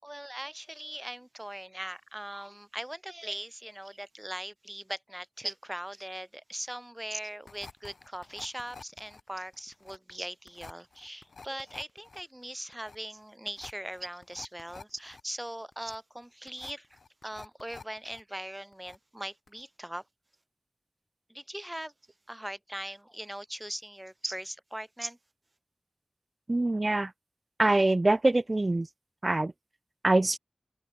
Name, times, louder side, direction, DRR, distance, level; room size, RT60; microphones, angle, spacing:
voice 1, 0.0-20.0 21.3-21.9 22.3-25.2, right 1 dB, 15° right, 3.8 m, -41 dB
sound 1, 7.5-18.2 18.5-19.2 19.5-19.6, left 4 dB, 85° left, 4.3 m, -50 dB
voice 2, 26.5-27.1 27.6-28.9 29.2-29.5 30.0-30.4, right 2 dB, 40° right, 1.2 m, -24 dB
open air
wide cardioid pair, 55°, 0 cm